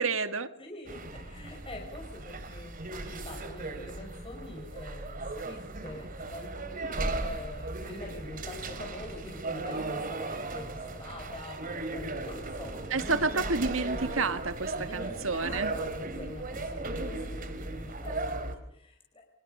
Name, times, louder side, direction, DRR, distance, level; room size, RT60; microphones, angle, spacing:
voice 1, 0.0-0.5 12.9-15.7, right 4 dB, 75° right, 10 dB, 1.8 m, -29 dB
voice 2, 0.6-2.7 3.0-13.4 14.7-19.3, left 1 dB, 25° left, 1 dB, 4.9 m, -45 dB
sound 1, 0.9-18.6, right 2 dB, 45° right, 3.4 m, -37 dB
29.0 x 26.0 x 5.5 m, 0.74 s
head